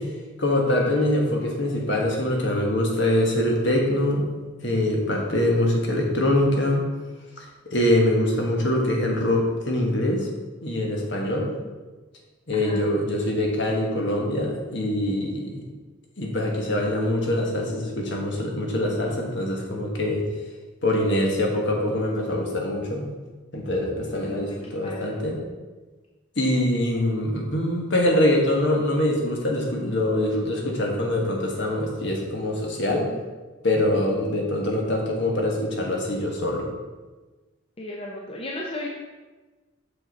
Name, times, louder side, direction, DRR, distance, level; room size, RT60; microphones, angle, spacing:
voice 1, 0.4-4.2 4.6-6.8 7.4-10.3 10.6-11.5 12.5-15.7 16.2-20.3 20.8-23.1 23.5-25.4 26.4-33.1 33.6-36.7, left 1 dB, 60° left, 0 dB, 1.3 m, -24 dB
voice 2, 12.5-12.8 24.2-25.2 37.8-38.9, left 1 dB, 30° left, -2 dB, 0.6 m, -35 dB
6.3 x 5.6 x 4.0 m, 1.3 s
head